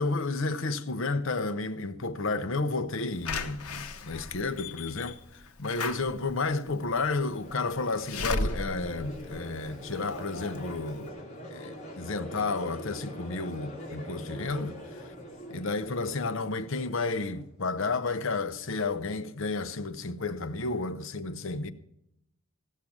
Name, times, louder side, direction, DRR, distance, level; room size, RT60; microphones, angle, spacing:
voice 1, 0.0-11.1 11.5-14.8 15.5-21.7, left 3 dB, 60° left, 0.8 m, -31 dB
Slam / Alarm, 3.3-10.1 10.5-10.6 10.9-11.0, left 3 dB, 90° left, 1.0 m, -36 dB
Crowd, 7.3-17.4, equal, 35° left, 3.2 m, -43 dB
16.0 x 6.6 x 8.5 m
head